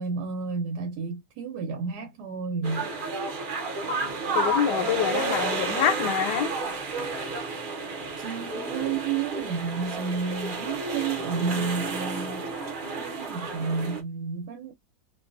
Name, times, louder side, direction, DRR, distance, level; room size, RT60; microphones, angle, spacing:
voice 1, 0.0-2.9 8.2-12.5 13.0-14.7, right 5 dB, 80° right, 1.1 m, -31 dB
sound 1, 2.6-14.0, right 3 dB, 50° right, 0.6 m, -31 dB
voice 2, 4.3-6.5, left 10 dB, 90° left, 1.2 m, -26 dB
2.5 x 2.2 x 2.4 m
omnidirectional pair, 1.7 m